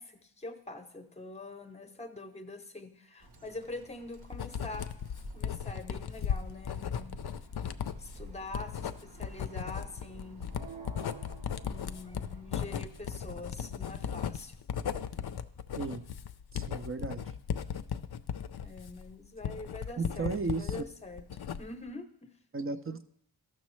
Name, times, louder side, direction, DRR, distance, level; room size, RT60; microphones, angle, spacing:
voice 1, 0.0-4.9 5.3-7.2 8.0-10.4 11.6-14.6 18.6-22.3, left 2 dB, 15° left, 8 dB, 0.8 m, -44 dB
Bird, 3.2-13.3, right 1 dB, 55° right, 1.0 m, -51 dB
Writing, 4.3-20.8 21.2-21.9, left 8 dB, 55° left, 0.5 m, -36 dB
sound 1, 10.5-12.6, right 5 dB, 75° right, 1.1 m, -50 dB
voice 2, 16.5-17.2 20.0-20.7 22.5-23.0, right 3 dB, 30° right, 10 dB, 0.5 m, -34 dB
13.0 x 6.3 x 3.1 m, 0.74 s
wide cardioid pair, 55°, 46 cm